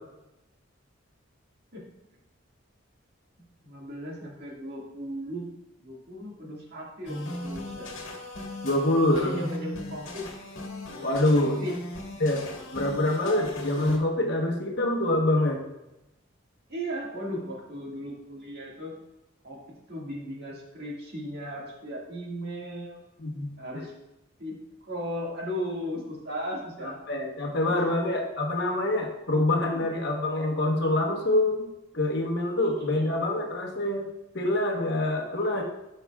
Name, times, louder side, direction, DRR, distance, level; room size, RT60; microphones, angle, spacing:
voice 1, 3.6-5.5 5.8-7.9 9.1-10.3 10.9-11.7 16.7-19.0 19.4-23.0 23.6-23.9 24.4-27.0 27.7-27.9 29.6-29.9 32.6-33.1, equal, 50° right, -3 dB, 1.9 m, -37 dB
sound 1, 7.1-14.0, left 1 dB, 70° left, 1.4 m, -37 dB
voice 2, 8.6-9.4 11.0-11.6 12.2-12.5 12.7-15.6 23.2-23.5 27.1-31.7 31.9-34.1 34.3-35.6, left 1 dB, 55° left, 1 dB, 1.1 m, -25 dB
12.0 x 5.6 x 2.3 m, 0.93 s
head